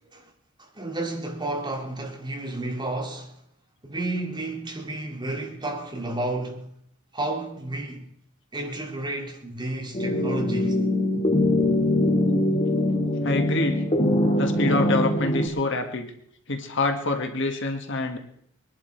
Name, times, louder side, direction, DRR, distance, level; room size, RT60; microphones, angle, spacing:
voice 1, 0.6-3.4 3.8-6.7 7.1-8.1 8.5-10.8, right 2 dB, 20° right, 2.4 m, -31 dB
sound 1, 9.9-15.5, left 1 dB, 30° left, 2.2 m, -22 dB
voice 2, 13.2-13.8 14.4-16.1 16.5-18.2, left 2 dB, 60° left, 1.8 m, -26 dB
22.5 x 11.0 x 4.7 m
head